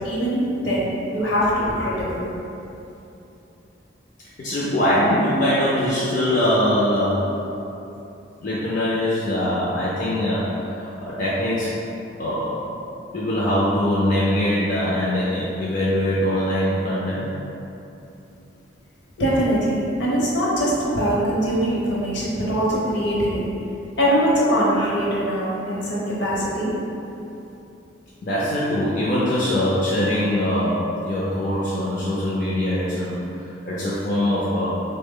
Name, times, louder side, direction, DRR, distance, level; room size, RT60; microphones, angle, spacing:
voice 1, 0.0-2.3 19.2-23.4 24.0-26.7, equal, 65° left, -6 dB, 0.8 m, -22 dB
voice 2, 4.4-7.4 8.4-11.8 12.2-12.7 13.1-17.3 28.2-34.7, left 1 dB, 40° left, -8 dB, 0.4 m, -22 dB
3.3 x 2.1 x 3.6 m, 2.9 s
head